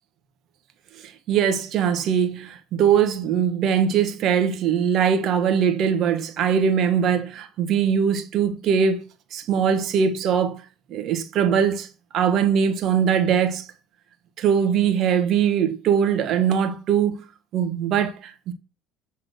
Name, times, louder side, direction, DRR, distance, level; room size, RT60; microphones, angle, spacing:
voice 1, 1.0-9.0 9.3-10.6 10.9-11.9 12.1-13.7 14.4-17.2 17.5-18.5, right 7 dB, 55° right, 1.4 m, -21 dB
8.1 x 3.7 x 6.4 m
supercardioid pair, 80°, 0 cm